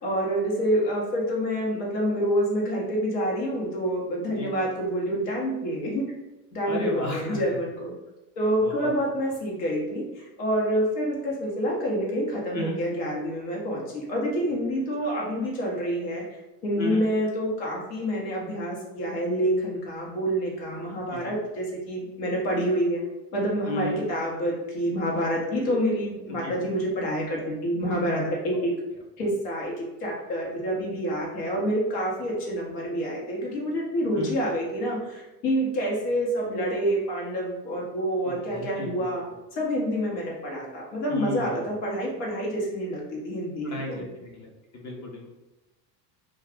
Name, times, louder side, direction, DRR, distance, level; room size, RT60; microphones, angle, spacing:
voice 1, 0.0-6.0 6.5-7.9 8.4-23.0 23.3-28.7 29.2-39.2 39.5-44.1, equal, 75° left, -3 dB, 1.1 m, -27 dB
voice 2, 6.7-7.4 8.6-8.9 12.5-12.8 16.8-17.0 21.1-21.3 23.7-24.0 26.4-26.5 28.5-28.6 34.2-34.3 38.2-38.9 41.1-41.7 43.6-44.5 44.7-45.3, left 2 dB, 35° left, -1 dB, 0.8 m, -33 dB
2.4 x 2.3 x 3.5 m, 1.0 s
hypercardioid pair, 90°, 49 cm